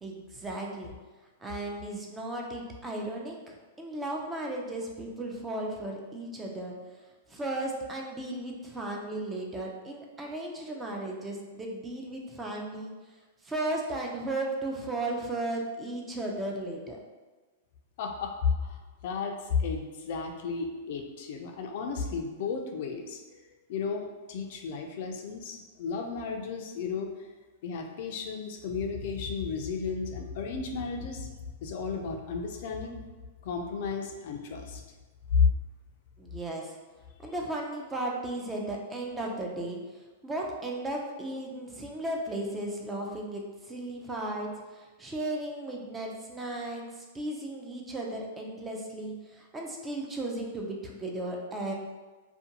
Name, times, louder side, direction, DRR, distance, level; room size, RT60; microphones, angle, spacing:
voice 1, 0.0-0.9 1.4-6.7 7.3-12.9 13.4-17.0 36.2-36.8 37.2-39.8 40.2-51.7, right 1 dB, 15° right, 0 dB, 0.4 m, -35 dB
voice 2, 18.0-23.4 23.7-27.3 27.6-31.3 31.6-33.0 33.4-34.8 35.3-35.5, left 5 dB, 60° left, 3 dB, 0.3 m, -32 dB
2.5 x 2.2 x 2.7 m, 1.3 s
hypercardioid pair, 135°, 0 cm